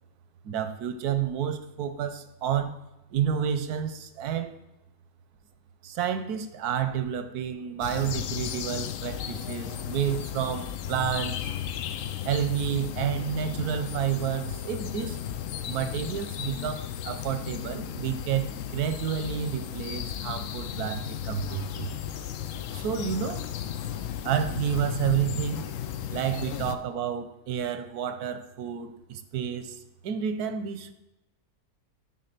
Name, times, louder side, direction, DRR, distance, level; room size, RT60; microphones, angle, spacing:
voice 1, 0.4-2.8 3.1-4.5 5.8-11.4 12.2-15.2 15.7-21.9 22.7-23.5 24.2-25.6 26.1-30.9, right 9 dB, 90° right, 10 dB, 1.3 m, -30 dB
sound 1, 7.8-26.8, left 10 dB, 70° left, 0.9 m, -35 dB
9.9 x 3.5 x 6.7 m, 0.94 s
omnidirectional pair, 1.6 m